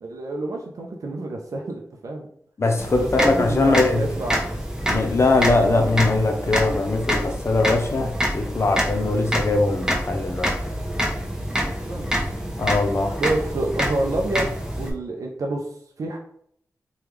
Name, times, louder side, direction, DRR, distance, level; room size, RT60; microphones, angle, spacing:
voice 1, 0.0-2.3 3.0-4.5 11.6-12.1 13.2-15.7 16.0-16.2, right 2 dB, 70° right, 0 dB, 0.4 m, -28 dB
voice 2, 2.6-4.0 4.9-10.5 12.6-13.1, left 2 dB, 50° left, 4 dB, 0.6 m, -21 dB
sound 1, 2.8-14.9, equal, 10° right, 0.7 m, -27 dB
3.4 x 2.3 x 3.1 m, 0.68 s
wide cardioid pair, 70°, 6 cm